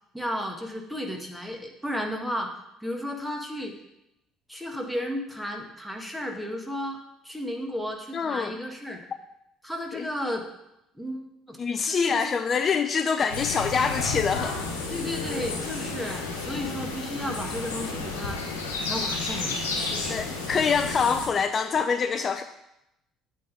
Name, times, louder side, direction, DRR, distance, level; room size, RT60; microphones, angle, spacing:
voice 1, 0.1-2.5 2.8-3.8 4.5-9.0 9.6-10.5 11.0-11.2 11.5-11.6 11.9-12.3 14.9-18.4 18.8-20.3, equal, ahead, 2 dB, 1.6 m, -33 dB
voice 2, 8.1-8.6 9.9-10.1 11.6-14.6 20.0-22.4, left 6 dB, 40° left, 9 dB, 0.4 m, -25 dB
sound 1, 13.3-21.3, left 3 dB, 80° left, 1.1 m, -32 dB
8.5 x 3.8 x 6.6 m, 0.85 s
hypercardioid pair, 55°, 0 cm